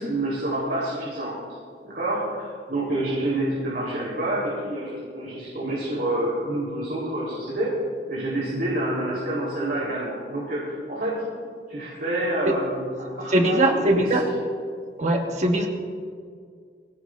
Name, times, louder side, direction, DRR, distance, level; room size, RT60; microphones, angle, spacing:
voice 1, 0.0-1.4 1.8-7.7 8.1-11.1 11.7-14.1, right 1 dB, 55° right, -6 dB, 4.1 m, -28 dB
voice 2, 13.3-14.3 15.0-15.7, right 1 dB, 40° right, 2 dB, 1.7 m, -21 dB
23.5 x 17.0 x 2.7 m, 2.1 s
head